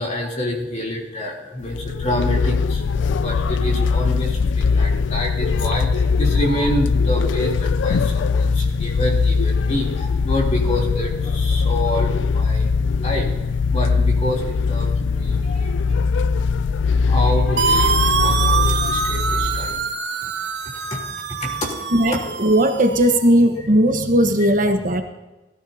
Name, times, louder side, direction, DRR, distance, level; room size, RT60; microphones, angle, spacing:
voice 1, 0.0-12.7 12.9-13.3 13.7-16.2 17.0-19.8 20.7-21.0 21.4-21.8 23.6-23.7, left 1 dB, 40° left, -2 dB, 3.2 m, -27 dB
sound 1, 1.6-19.9, left 4 dB, 75° left, 0.3 m, -20 dB
sound 2, 17.6-23.3, right 5 dB, 65° right, 1.0 m, -24 dB
voice 2, 21.9-25.0, right 1 dB, 45° right, 5 dB, 1.1 m, -17 dB
17.5 x 14.0 x 2.8 m, 1.1 s
head